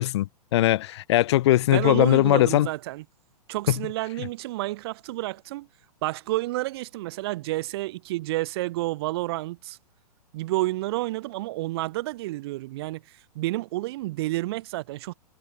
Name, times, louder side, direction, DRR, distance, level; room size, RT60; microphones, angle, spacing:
voice 1, 0.0-2.7 3.7-3.8, left 15 dB, 45° left, 0.4 m, -20 dB
voice 2, 1.7-3.0 3.5-5.7 6.0-9.8 10.3-15.1, right 18 dB, 40° right, 0.5 m, -30 dB
figure-of-eight pair, 110°, 20 cm